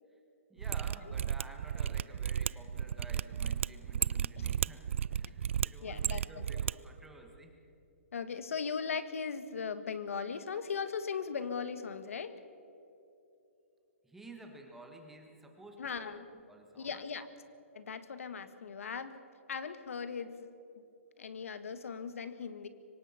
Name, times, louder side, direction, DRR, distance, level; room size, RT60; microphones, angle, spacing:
voice 1, 0.5-7.5 14.0-17.0, right 2 dB, 5° right, 3 dB, 1.5 m, -53 dB
Mechanisms, 0.6-6.7 7.0-7.1, right 9 dB, 60° right, 0.4 m, -33 dB
voice 2, 5.8-6.4 8.1-12.3 15.8-16.3 16.8-17.3 17.7-19.2 19.5-20.5 21.2-22.7, left 6 dB, 75° left, 11 dB, 1.5 m, -38 dB
24.5 x 19.0 x 5.7 m, 2.8 s
hypercardioid pair, 165°, 7 cm